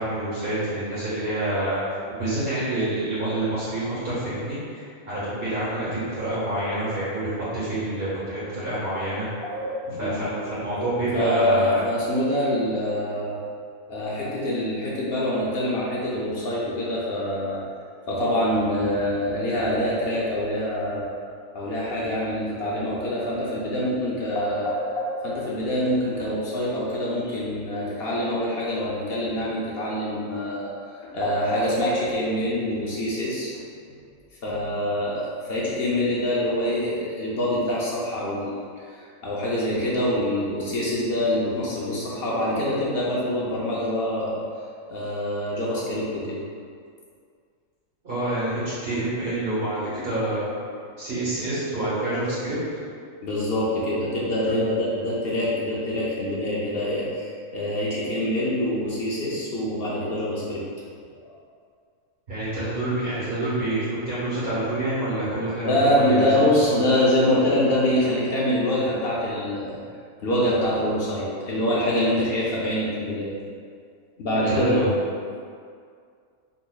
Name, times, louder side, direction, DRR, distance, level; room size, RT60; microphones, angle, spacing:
voice 1, 0.0-9.3 10.0-11.9 48.0-50.5 51.0-52.6 54.4-54.6 62.3-66.4 66.7-66.8 74.5-74.9, right 1 dB, 45° right, -10 dB, 1.5 m, -27 dB
voice 2, 11.1-13.4 13.9-17.6 18.1-21.0 21.5-30.7 31.1-33.5 34.4-44.4 44.9-46.4 53.2-60.6 61.2-61.4 65.7-69.8 70.2-73.3 74.2-74.8, left 1 dB, 60° left, -6 dB, 0.7 m, -25 dB
3.9 x 2.9 x 2.2 m, 2.2 s
omnidirectional pair, 1.4 m